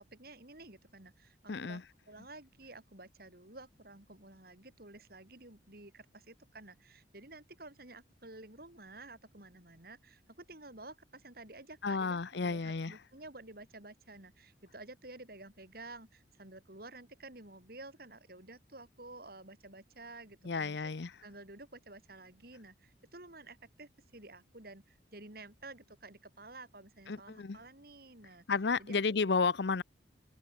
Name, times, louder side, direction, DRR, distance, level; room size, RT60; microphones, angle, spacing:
voice 1, 0.0-1.8 2.1-20.9 21.2-28.5 28.8-29.3, right 2 dB, 50° right, 4.4 m, -52 dB
voice 2, 1.5-1.8 11.8-13.0 20.4-21.1 27.1-27.6 28.5-29.8, left 4 dB, 65° left, 0.7 m, -32 dB
open air
head